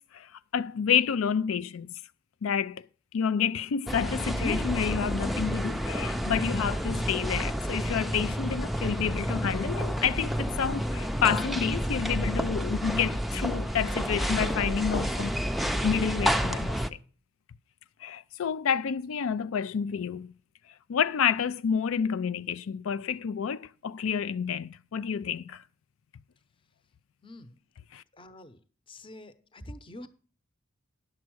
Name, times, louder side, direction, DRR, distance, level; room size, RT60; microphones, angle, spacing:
voice 1, 0.0-1.9 2.4-2.8 3.1-15.3 15.6-16.7 18.0-20.3 20.9-25.6 27.9-28.0, left 7 dB, 85° left, 0.4 m, -29 dB
sound 1, 3.9-16.9, equal, ahead, 0.4 m, -30 dB
voice 2, 28.2-28.6 28.9-30.1, left 1 dB, 25° left, 0.8 m, -45 dB
10.5 x 7.2 x 6.1 m
head